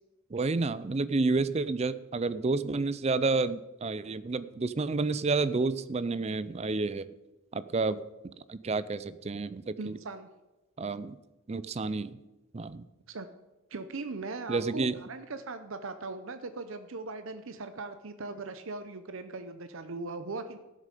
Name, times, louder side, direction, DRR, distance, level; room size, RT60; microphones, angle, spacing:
voice 1, 0.3-7.1 7.5-10.0 10.8-11.1 11.5-12.1 12.5-12.8 14.5-15.0, right 3 dB, 30° right, 15 dB, 0.4 m, -30 dB
voice 2, 9.8-10.3 13.1-13.3 13.7-20.6, right 3 dB, 65° right, 9 dB, 0.7 m, -39 dB
12.5 x 7.4 x 6.7 m, 1.1 s
head